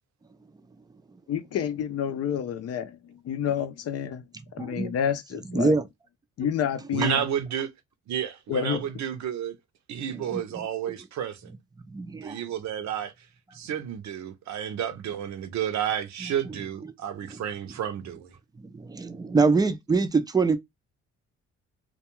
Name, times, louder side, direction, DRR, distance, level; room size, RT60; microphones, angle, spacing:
voice 1, 1.3-4.2 4.5-5.8 6.4-7.2 8.5-8.8, left 8 dB, 55° left, 0.5 m, -29 dB
voice 2, 4.6-4.9 5.5-5.8 10.3-10.4 11.9-12.4 18.6-20.6, right 4 dB, 15° right, 0.4 m, -24 dB
voice 3, 6.9-7.7 8.1-9.6 9.9-11.5 12.2-13.3 13.5-18.3, right 9 dB, 65° right, 0.6 m, -31 dB
2.3 x 2.2 x 2.9 m
cardioid pair, 90°, 30 cm